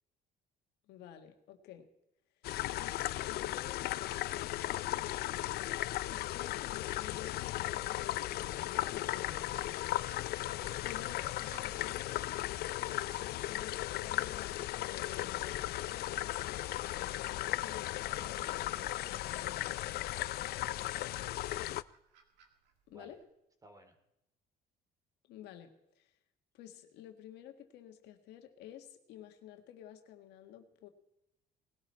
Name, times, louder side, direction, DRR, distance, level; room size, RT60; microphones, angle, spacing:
voice 1, 0.9-1.9 2.8-5.5 6.1-9.5 10.8-19.8 22.9-23.2 25.3-26.1 26.5-30.9, left 11 dB, 85° left, 6 dB, 1.7 m, -52 dB
sound 1, 2.4-21.8, left 15 dB, 70° left, 0.5 m, -36 dB
sound 2, 8.1-23.2, right 6 dB, 85° right, 2.1 m, -61 dB
voice 2, 9.9-10.8 21.1-21.7 22.9-23.2 23.6-24.0, right 1 dB, 20° right, 6 dB, 2.6 m, -59 dB
19.0 x 13.0 x 4.3 m, 0.84 s
cardioid pair, 110°, 17 cm